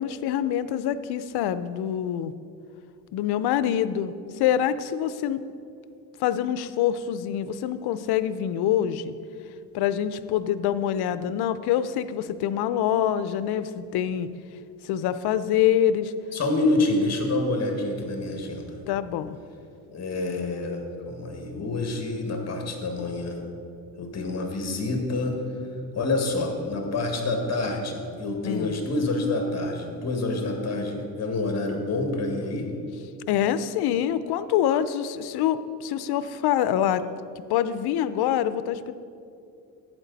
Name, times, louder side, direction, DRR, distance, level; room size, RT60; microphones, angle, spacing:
voice 1, 0.0-2.3 3.1-5.4 6.2-9.1 9.7-14.3 14.8-16.1 18.9-19.4 28.4-28.7 33.3-37.1 37.5-38.9, left 10 dB, 80° left, 14 dB, 0.6 m, -25 dB
voice 2, 16.3-18.8 19.9-23.5 24.0-25.4 25.9-32.7, left 2 dB, 40° left, 3 dB, 1.9 m, -27 dB
11.5 x 8.9 x 4.0 m, 2.5 s
cardioid pair, 110°, 38 cm